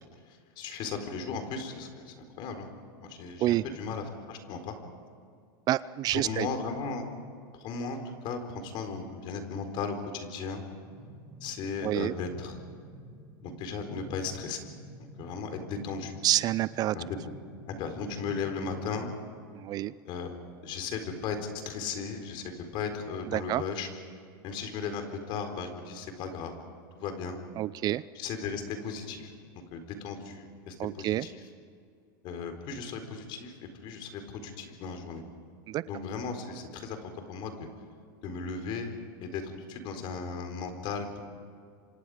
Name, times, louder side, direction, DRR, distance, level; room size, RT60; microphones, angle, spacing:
voice 1, 0.3-2.7 3.0-4.8 6.1-7.0 7.6-8.0 8.2-10.6 11.4-12.6 13.4-14.6 15.2-16.2 16.9-17.1 17.7-19.1 20.0-20.3 20.6-23.9 24.4-26.5 27.0-27.4 28.1-29.3 29.7-31.4 32.2-35.2 35.9-37.7 38.2-38.9 39.2-41.2, left 5 dB, 45° left, 6 dB, 4.2 m, -36 dB
voice 2, 5.7-6.5 11.8-12.1 16.2-17.0 19.5-19.9 23.3-23.6 27.6-28.0 30.8-31.3 35.7-35.8, right 14 dB, 35° right, 18 dB, 0.5 m, -28 dB
sound 1, 10.8-19.1, right 1 dB, 15° right, 5.1 m, -49 dB
29.0 x 25.5 x 5.0 m, 2.4 s
supercardioid pair, 130°, 12 cm